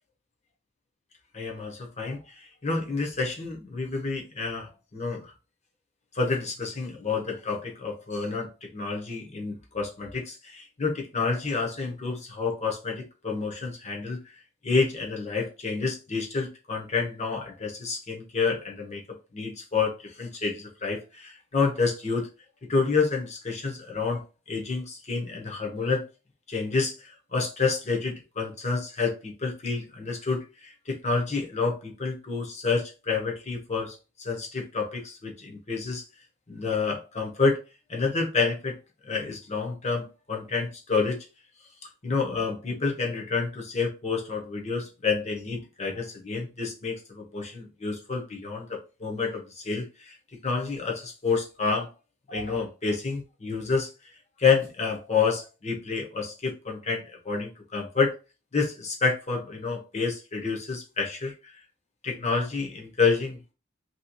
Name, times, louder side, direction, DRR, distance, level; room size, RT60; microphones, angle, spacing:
voice 1, 1.3-5.3 6.1-14.2 14.6-22.3 22.7-24.2 24.5-26.1 26.5-36.0 36.5-37.6 37.9-38.8 39.1-41.3 42.0-50.2 50.4-51.9 52.3-53.9 54.4-58.1 58.5-61.5 62.0-63.4, left 4 dB, 35° left, 0.9 m, -29 dB
3.0 x 2.8 x 2.9 m
head